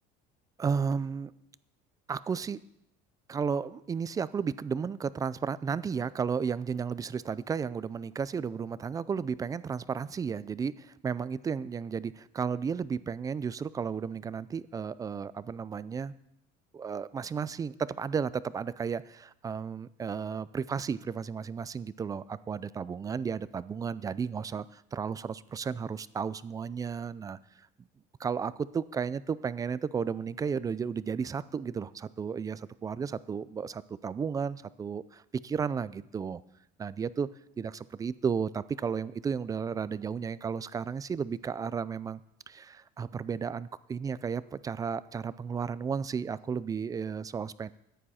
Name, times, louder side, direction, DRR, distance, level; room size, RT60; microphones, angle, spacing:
voice 1, 0.6-1.3 2.1-2.6 3.3-16.1 16.7-27.4 28.2-36.4 36.8-37.3 37.6-42.2 42.5-47.7, right 6 dB, 20° right, 17 dB, 0.3 m, -33 dB
14.0 x 10.0 x 4.2 m, 0.78 s
cardioid pair, 135°, 19 cm